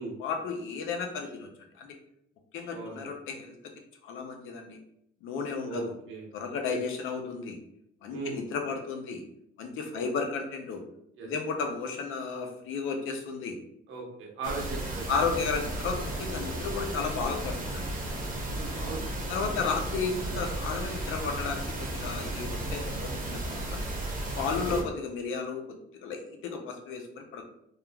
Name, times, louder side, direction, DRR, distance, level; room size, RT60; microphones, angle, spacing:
voice 1, 0.2-1.5 1.8-1.9 2.5-3.6 4.0-4.8 5.2-5.9 6.3-7.6 8.0-9.2 9.6-10.8 11.2-13.6 15.1-17.9 19.3-23.8 24.4-27.5, left 5 dB, 85° left, 4 dB, 0.5 m, -33 dB
voice 2, 2.7-3.1 5.6-6.3 6.7-6.8 8.1-8.4 9.9-10.0 11.2-11.3 13.9-15.2 18.5-19.7 24.6-24.8, right 3 dB, 85° right, -1 dB, 0.9 m, -38 dB
sound 1, 14.4-24.8, right 1 dB, 40° right, 1.0 m, -34 dB
3.0 x 2.3 x 2.2 m, 0.74 s
cardioid pair, 90°, 20 cm